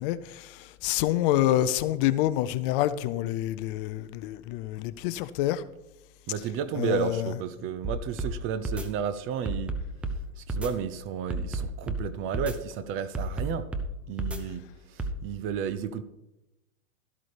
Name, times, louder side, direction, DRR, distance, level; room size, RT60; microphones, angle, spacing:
voice 1, 0.0-5.6 6.3-7.4, left 13 dB, 40° left, 0.6 m, -27 dB
voice 2, 6.3-9.8 10.4-13.7 14.1-16.0, right 8 dB, 30° right, 0.7 m, -32 dB
sound 1, 7.8-8.3 8.6-8.9 9.5-10.2 10.5-10.7 11.3-12.0 12.3-12.6 13.1-13.9 14.2-14.4 15.0-15.2, right 2 dB, 5° right, 0.3 m, -31 dB
12.5 x 12.0 x 3.4 m
hypercardioid pair, 125°, 42 cm